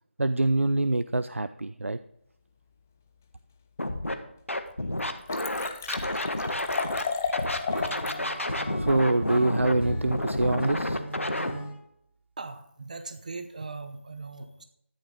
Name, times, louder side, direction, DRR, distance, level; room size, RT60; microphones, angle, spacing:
voice 1, 0.2-2.0 8.8-11.0, right 2 dB, 80° right, 13 dB, 0.5 m, -25 dB
Scratching (performance technique), 3.8-4.1 4.5-7.0 7.3-11.5, left 1 dB, 80° left, 1.5 m, -30 dB
Liquid, 4.1-4.2 4.7-4.8 5.0-8.2 8.6-8.7, left 5 dB, 10° left, 0.4 m, -33 dB
Acoustic guitar / Strum, 7.7-11.8, right 1 dB, 60° right, 3.7 m, -40 dB
voice 2, 12.4-14.6, right 3 dB, 35° right, 9 dB, 0.8 m, -39 dB
12.5 x 10.5 x 3.8 m, 0.75 s
figure-of-eight pair, 165°, 7 cm